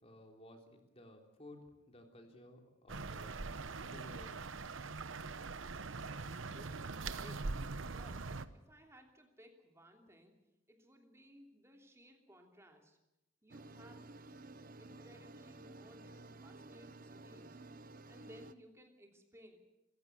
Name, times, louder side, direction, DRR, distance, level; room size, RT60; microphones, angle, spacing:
voice 1, 0.0-1.6 1.9-3.3 3.8-4.4, left 1 dB, 30° left, 3 dB, 3.4 m, -56 dB
sound 1, 2.9-8.5, right 3 dB, 90° right, 1.0 m, -42 dB
voice 2, 6.1-10.4 10.7-13.0 13.4-14.3 14.8-17.6 18.1-19.6, equal, 15° right, 3 dB, 3.1 m, -60 dB
sound 2, 13.5-18.5, right 2 dB, 45° right, 0.8 m, -53 dB
26.0 x 15.5 x 8.2 m, 0.93 s
head